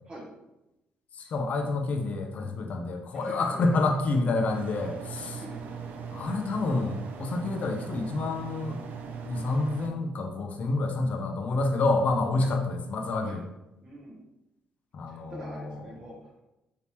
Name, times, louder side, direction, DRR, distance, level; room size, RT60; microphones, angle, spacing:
voice 1, 1.1-5.4 6.1-8.8 9.3-13.4 14.9-15.8, left 3 dB, 50° left, 4 dB, 0.5 m, -28 dB
voice 2, 3.1-3.7 4.8-5.6 6.6-6.9 12.4-12.6 13.2-13.4 13.8-14.2 15.1-16.4, right 1 dB, 25° right, -7 dB, 0.7 m, -45 dB
sound 1, 4.4-9.9, right 6 dB, 65° right, 0.4 m, -39 dB
3.4 x 2.8 x 2.8 m, 0.92 s
cardioid pair, 110°, 3 cm